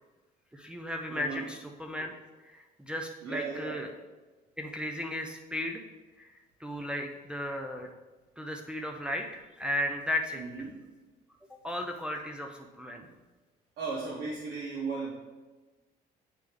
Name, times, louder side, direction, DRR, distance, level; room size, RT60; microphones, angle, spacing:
voice 1, 0.5-2.1 2.4-3.9 4.6-5.8 6.2-7.9 8.4-10.7 11.6-13.1, left 1 dB, 5° right, 1 dB, 0.5 m, -35 dB
voice 2, 1.1-1.4 3.2-3.8 10.4-10.8 13.0-13.1 13.8-15.1, right 4 dB, 75° right, -5 dB, 1.2 m, -36 dB
9.0 x 3.5 x 3.4 m, 1.2 s
cardioid pair, 110°, 17 cm